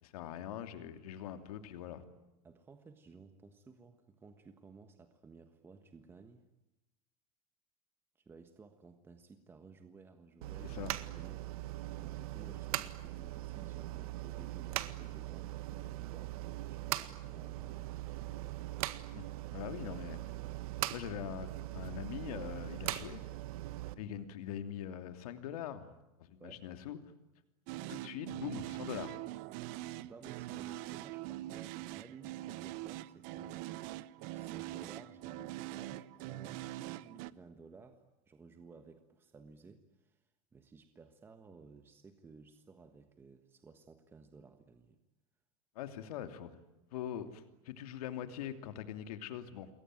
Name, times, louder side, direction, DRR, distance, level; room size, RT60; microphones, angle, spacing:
voice 1, 0.0-2.0 10.6-10.9 19.1-19.2 19.5-20.2 20.9-23.2 24.0-25.9 26.2-27.0 27.9-29.2 45.7-46.5 46.9-49.7, left 10 dB, 85° left, 9 dB, 2.9 m, -42 dB
voice 2, 2.4-6.5 8.1-10.8 11.1-11.5 12.0-16.4 16.7-18.7 26.4-26.7 30.0-33.8 34.2-45.0, right 4 dB, 10° right, 7 dB, 1.4 m, -56 dB
sound 1, 10.4-23.9, right 16 dB, 80° right, 1.8 m, -41 dB
sound 2, 27.7-37.3, right 16 dB, 45° right, 0.9 m, -43 dB
28.5 x 22.5 x 9.2 m, 0.95 s
supercardioid pair, 170°, 18 cm